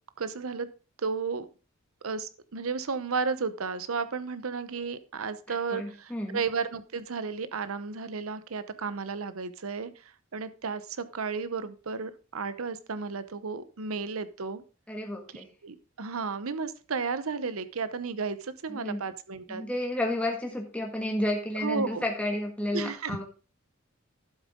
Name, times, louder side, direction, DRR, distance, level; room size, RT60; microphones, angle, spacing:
voice 1, 0.2-0.7 1.0-1.5 2.0-14.6 15.3-19.6 21.5-22.0 22.7-23.2, right 5 dB, 85° right, 13 dB, 0.8 m, -33 dB
voice 2, 5.5-6.4 14.9-15.5 18.7-19.0 19.5-23.2, left 1 dB, 5° left, 0 dB, 1.6 m, -31 dB
12.0 x 7.4 x 3.6 m, 0.34 s
head